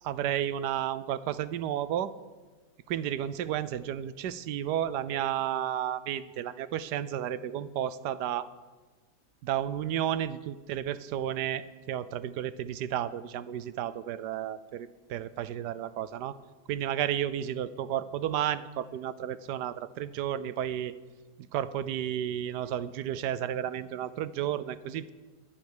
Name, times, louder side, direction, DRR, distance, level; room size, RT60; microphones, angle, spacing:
voice 1, 0.0-2.1 2.9-8.5 9.4-16.4 16.7-20.9 21.5-25.1, right 10 dB, 75° right, 15 dB, 1.2 m, -32 dB
11.0 x 9.6 x 9.8 m, 1.3 s
omnidirectional pair, 1.9 m